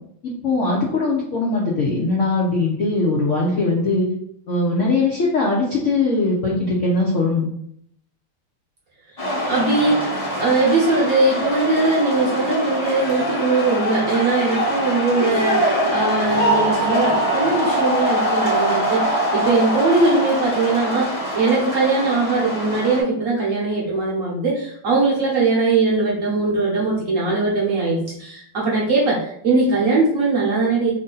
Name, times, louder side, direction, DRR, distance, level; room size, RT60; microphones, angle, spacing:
voice 1, 0.2-4.1 4.5-7.4, left 3 dB, 70° left, -3 dB, 0.7 m, -20 dB
sound 1, 9.2-23.0, equal, 25° left, 0.8 m, -23 dB
voice 2, 9.5-10.1 10.4-30.9, right 3 dB, 55° right, -4 dB, 1.0 m, -20 dB
3.2 x 2.6 x 3.7 m, 0.69 s
omnidirectional pair, 2.1 m